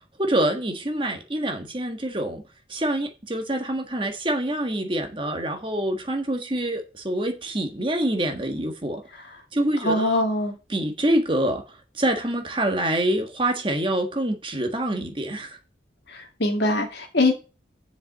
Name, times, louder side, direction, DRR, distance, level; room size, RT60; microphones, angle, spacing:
voice 1, 0.2-2.4 2.7-9.0 9.5-10.2 10.7-11.6 11.9-15.6, right 1 dB, 30° right, 1.5 m, -26 dB
voice 2, 9.8-10.5 16.1-17.3, left 2 dB, 70° left, 2.5 m, -23 dB
7.1 x 5.4 x 7.3 m
head